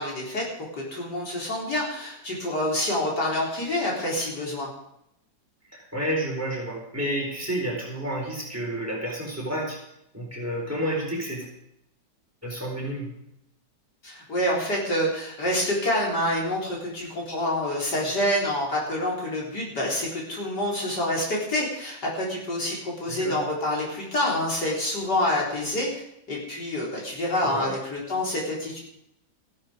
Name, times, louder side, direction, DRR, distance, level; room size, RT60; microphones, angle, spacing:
voice 1, 0.0-4.7 14.0-28.8, left 1 dB, 60° left, -3 dB, 4.6 m, -27 dB
voice 2, 5.7-9.8 10.1-11.4 12.4-13.1 23.1-23.4 27.5-27.7, right 1 dB, 10° right, -2 dB, 4.5 m, -30 dB
14.5 x 12.0 x 5.2 m, 0.79 s
omnidirectional pair, 2.0 m